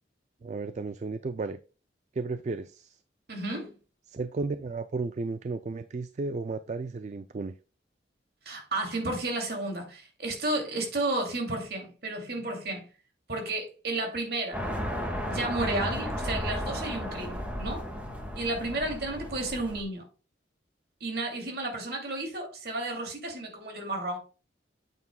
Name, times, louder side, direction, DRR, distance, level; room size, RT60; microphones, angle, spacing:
voice 1, 0.4-1.6 2.1-3.0 4.1-7.6, right 3 dB, 40° right, 0.3 m, -33 dB
voice 2, 3.3-3.7 8.4-12.9 13.3-14.6 15.3-17.8 18.4-20.1 21.0-24.2, right 2 dB, 55° right, 2.6 m, -32 dB
sound 1, 14.5-19.8, equal, 10° right, 1.7 m, -34 dB
9.2 x 8.2 x 2.2 m
head